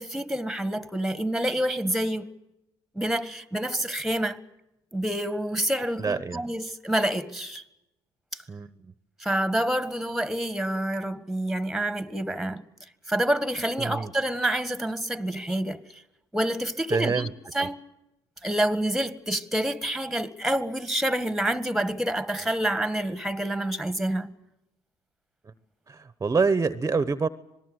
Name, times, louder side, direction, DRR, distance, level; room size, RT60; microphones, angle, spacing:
voice 1, 0.0-2.3 3.0-4.4 4.9-7.6 8.3-8.4 9.2-12.6 13.1-16.0 16.3-17.3 17.5-17.8 18.4-24.3, right 1 dB, ahead, 1.7 m, -27 dB
voice 2, 6.0-6.4 8.5-8.7 13.8-14.1 16.9-17.3 17.6-17.7 25.9-27.3, right 4 dB, 25° right, 1.1 m, -26 dB
26.0 x 19.5 x 8.1 m
supercardioid pair, 75°, 12 cm